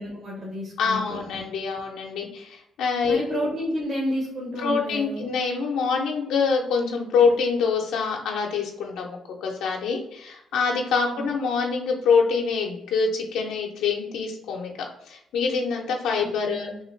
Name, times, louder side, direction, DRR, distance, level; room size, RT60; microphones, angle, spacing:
voice 1, 0.0-1.4 3.1-5.3 11.2-11.3 16.4-16.8, equal, 50° right, -4 dB, 1.2 m, -30 dB
voice 2, 0.8-3.2 4.6-14.7 15.1-16.7, left 5 dB, 85° left, 0 dB, 0.6 m, -25 dB
3.6 x 2.3 x 3.1 m, 0.80 s
cardioid pair, 90°, 0 cm